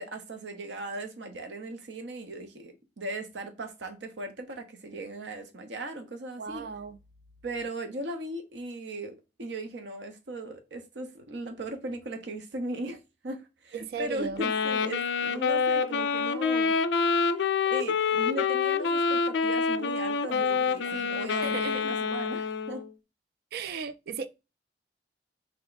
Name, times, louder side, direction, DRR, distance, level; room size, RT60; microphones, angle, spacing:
voice 1, 0.0-6.6 7.4-16.8 17.7-22.8, right 1 dB, 75° right, 0.8 m, -38 dB
voice 2, 6.4-7.0 13.7-14.4 20.3-21.0 21.3-22.0 23.5-24.3, right 6 dB, 60° right, 0.3 m, -37 dB
Wind instrument woodwind instrument, 14.4-22.9, left 5 dB, 80° left, 0.4 m, -27 dB
3.4 x 3.4 x 3.9 m
head